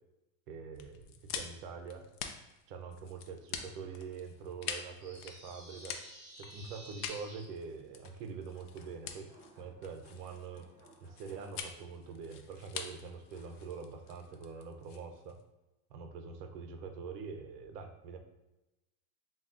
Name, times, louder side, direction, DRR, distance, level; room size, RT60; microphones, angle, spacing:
voice 1, 0.5-2.0 2.7-6.0 6.4-9.3 9.6-10.7 11.0-15.4 15.9-18.2, right 5 dB, 75° right, 5 dB, 0.8 m, -44 dB
sound 1, 0.7-15.4, left 7 dB, 65° left, 0.6 m, -46 dB
sound 2, 5.0-7.4, right 1 dB, 5° right, 1.4 m, -52 dB
sound 3, 8.5-14.6, right 2 dB, 30° right, 0.7 m, -64 dB
7.0 x 2.4 x 2.4 m, 0.99 s
supercardioid pair, 170°, 49 cm